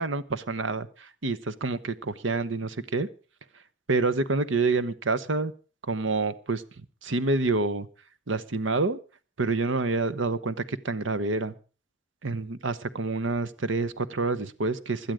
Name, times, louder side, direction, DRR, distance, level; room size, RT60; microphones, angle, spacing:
voice 1, 0.0-3.1 3.9-5.5 5.8-6.6 7.0-7.9 8.3-9.0 9.4-11.5 12.2-15.1, right 3 dB, 85° right, 14 dB, 1.0 m, -27 dB
17.0 x 12.0 x 5.0 m, 0.37 s
head